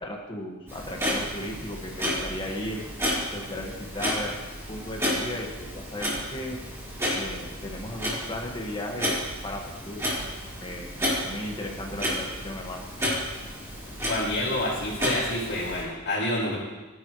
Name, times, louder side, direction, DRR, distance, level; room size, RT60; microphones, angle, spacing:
voice 1, 0.0-2.8 3.3-4.4 4.7-6.6 7.1-9.2 9.4-10.0 10.6-10.9 11.2-12.9, left 1 dB, 25° left, 0 dB, 1.9 m, -35 dB
Clock, 0.7-15.8, equal, 15° right, 4.8 m, -32 dB
voice 2, 14.1-16.6, left 1 dB, 50° left, -10 dB, 4.6 m, -28 dB
18.5 x 11.5 x 3.3 m, 1.2 s
head